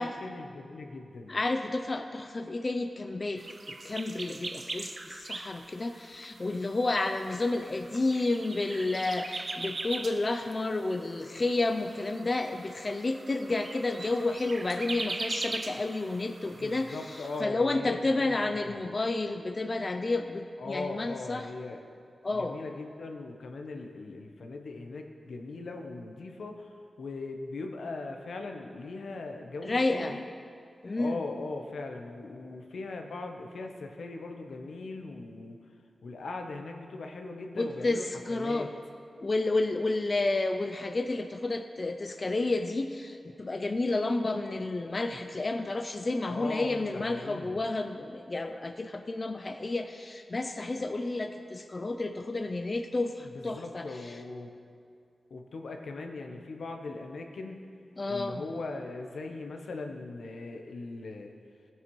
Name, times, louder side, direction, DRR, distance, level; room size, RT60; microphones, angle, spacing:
voice 1, 0.0-1.4 16.5-18.4 18.6-18.8 20.6-21.8 22.3-30.2 31.0-35.6 36.0-38.7 46.3-47.6 53.2-54.5 55.3-57.7 58.1-61.3, left 3 dB, 85° left, 3 dB, 0.8 m, -39 dB
voice 2, 1.3-3.4 3.8-17.0 17.4-21.5 22.2-22.6 29.6-30.2 30.8-31.2 37.5-38.7 39.2-53.8 58.0-58.4, left 2 dB, 40° left, 7 dB, 0.4 m, -30 dB
sound 1, 3.4-17.4, right 3 dB, 45° right, 0.5 m, -41 dB
15.0 x 9.0 x 3.1 m, 2.3 s
wide cardioid pair, 80°, 0 cm